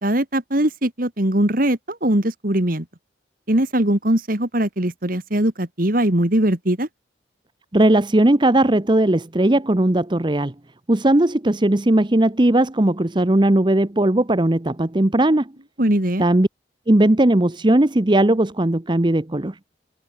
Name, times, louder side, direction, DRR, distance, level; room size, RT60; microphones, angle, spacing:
voice 1, 0.0-2.8 3.5-6.9 15.8-16.2, right 1 dB, 50° right, 2.7 m, -20 dB
voice 2, 7.7-10.5 10.9-15.5 16.2-16.5 16.9-19.6, right 1 dB, 25° right, 0.9 m, -18 dB
head